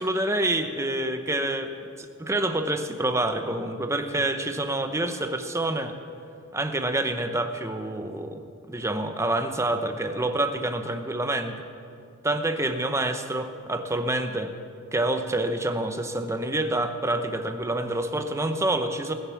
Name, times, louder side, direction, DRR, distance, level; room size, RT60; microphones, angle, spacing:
voice 1, 0.0-1.7 2.0-6.0 6.5-11.6 12.2-14.5 14.9-19.1, right 1 dB, 15° right, 7 dB, 0.8 m, -27 dB
20.5 x 7.2 x 7.1 m, 2.5 s
head